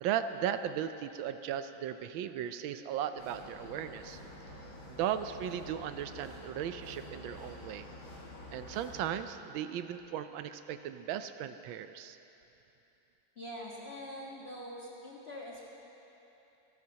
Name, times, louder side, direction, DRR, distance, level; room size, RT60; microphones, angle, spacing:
voice 1, 0.0-4.2 4.9-7.9 8.5-12.2, right 9 dB, 80° right, 10 dB, 1.3 m, -36 dB
sound 1, 3.2-9.1, left 1 dB, 75° left, 2.7 m, -48 dB
voice 2, 13.3-15.6, equal, 35° left, -5 dB, 1.6 m, -44 dB
27.5 x 12.0 x 2.9 m, 3.0 s
omnidirectional pair, 2.2 m